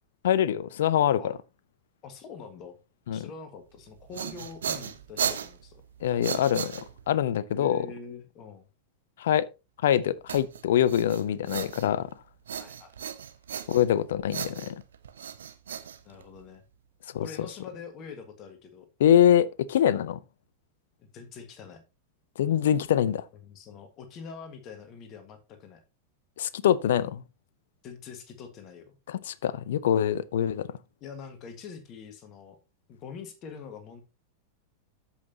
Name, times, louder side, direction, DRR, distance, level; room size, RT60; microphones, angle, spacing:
voice 1, 0.2-1.3 3.1-3.2 6.0-7.9 9.2-9.5 9.8-12.1 13.7-14.7 17.1-17.3 19.0-20.2 22.4-23.2 26.4-27.2 29.1-30.7, left 10 dB, 60° left, 0.6 m, -24 dB
voice 2, 2.0-2.8 3.1-5.8 7.5-8.7 12.6-13.0 16.0-16.6 17.2-18.9 21.0-21.8 23.4-25.8 27.8-28.9 31.0-32.6 32.9-34.0, left 5 dB, 35° left, 1.7 m, -44 dB
sound 1, 3.8-7.2 10.3-12.1 12.5-14.0 14.3-16.6, right 8 dB, 65° right, 0.8 m, -36 dB
13.5 x 5.7 x 2.9 m
figure-of-eight pair, 90°, 0 cm